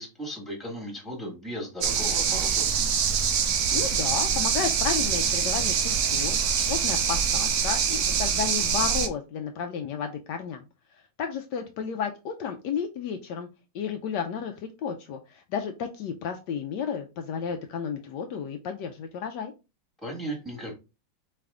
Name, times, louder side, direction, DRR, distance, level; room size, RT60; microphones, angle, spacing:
voice 1, 0.0-2.8 20.0-20.7, equal, ahead, 0 dB, 1.6 m, -36 dB
sound 1, 1.8-9.1, right 7 dB, 85° right, 0.6 m, -25 dB
voice 2, 3.7-6.4 6.7-10.6 10.9-13.5 13.7-19.5, left 7 dB, 75° left, 5 dB, 1.1 m, -32 dB
4.2 x 3.3 x 3.6 m, 0.28 s
omnidirectional pair, 2.0 m